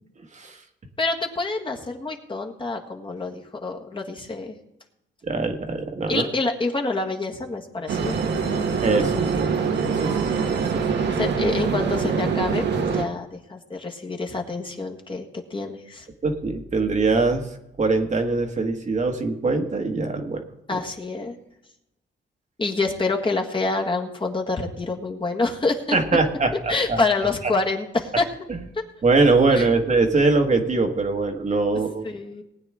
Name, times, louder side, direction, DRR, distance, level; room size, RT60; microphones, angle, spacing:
voice 1, 1.0-4.5 6.1-8.7 11.1-16.1 20.7-21.3 22.6-26.0 26.7-28.3 29.5-29.7 32.0-32.4, left 3 dB, 25° left, 1 dB, 1.7 m, -27 dB
voice 2, 5.2-6.3 8.8-9.5 9.8-10.2 10.7-10.8 16.2-17.4 17.8-20.4 20.7-20.8 25.9-27.0 28.5-28.7 29.0-32.1, right 3 dB, 35° right, 4 dB, 1.5 m, -22 dB
sound 1, 7.9-13.0, right 6 dB, 60° right, 1.3 m, -24 dB
19.5 x 8.9 x 3.6 m, 0.86 s
cardioid pair, 90°, 20 cm